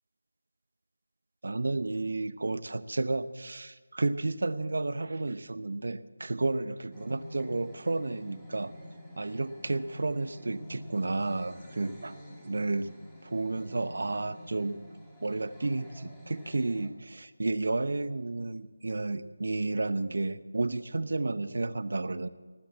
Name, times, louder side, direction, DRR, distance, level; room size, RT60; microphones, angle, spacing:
voice 1, 1.4-8.7 9.2-12.9 13.2-14.8 15.2-22.3, right 2 dB, 65° right, 14 dB, 0.8 m, -32 dB
sound 1, 6.9-16.9, left 1 dB, 5° left, 1.8 m, -49 dB
19.5 x 7.4 x 8.3 m, 1.4 s
figure-of-eight pair, 170°, 0 cm